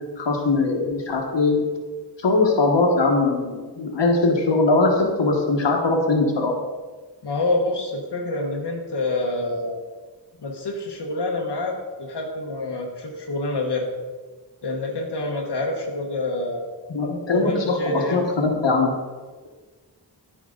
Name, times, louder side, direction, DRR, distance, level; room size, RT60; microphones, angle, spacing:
voice 1, 0.2-1.7 2.2-6.6 16.9-18.9, left 3 dB, 90° left, 1 dB, 1.4 m, -21 dB
voice 2, 7.2-9.8 10.4-13.9 14.6-16.7 17.3-18.2, left 2 dB, 70° left, -1 dB, 1.2 m, -27 dB
13.5 x 5.0 x 3.9 m, 1.4 s
wide cardioid pair, 90°, 42 cm